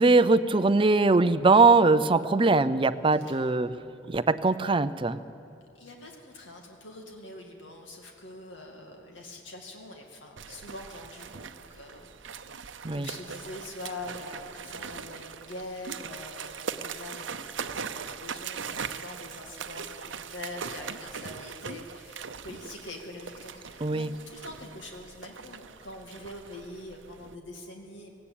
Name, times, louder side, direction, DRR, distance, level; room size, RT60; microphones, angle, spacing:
voice 1, 0.0-3.7 4.1-5.2 12.8-13.1 23.8-24.1, right 3 dB, 30° right, 11 dB, 0.6 m, -21 dB
voice 2, 5.7-28.1, left 2 dB, 80° left, 1 dB, 2.3 m, -44 dB
sound 1, 10.4-27.4, right 6 dB, 85° right, 0.8 m, -40 dB
17.5 x 17.0 x 8.7 m, 2.5 s
head